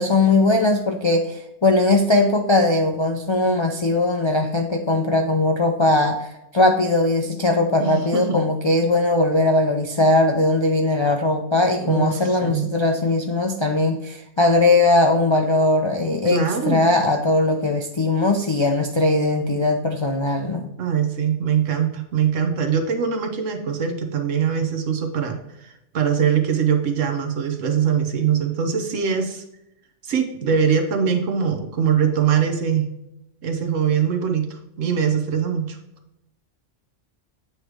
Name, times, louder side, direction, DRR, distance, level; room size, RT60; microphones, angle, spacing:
voice 1, 0.0-20.6, left 2 dB, 50° left, 2 dB, 0.3 m, -19 dB
voice 2, 7.8-8.4 11.8-12.6 16.3-16.8 20.8-29.4 30.0-32.9 33.4-35.8, right 7 dB, 85° right, 5 dB, 1.3 m, -22 dB
8.3 x 3.2 x 4.8 m, 0.85 s
omnidirectional pair, 1.3 m